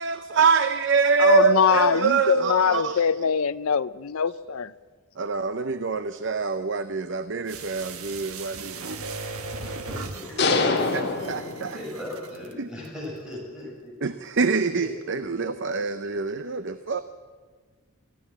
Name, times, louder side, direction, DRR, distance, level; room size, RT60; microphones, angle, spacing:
voice 1, 0.0-3.1 5.2-8.9 10.6-11.8 12.6-12.7 14.0-17.0, right 4 dB, 55° right, 0.6 m, -25 dB
voice 2, 1.2-4.7, left 6 dB, 70° left, 0.5 m, -22 dB
sound 1, 7.5-12.5 12.8-12.9, right 3 dB, 75° right, 1.4 m, -38 dB
voice 3, 8.7-10.7 11.7-13.9 14.7-16.2 16.7-16.8, left 1 dB, 5° right, 6.4 m, -40 dB
sound 2, 10.4-12.2, left 3 dB, 50° left, 1.9 m, -25 dB
24.5 x 14.5 x 7.4 m
head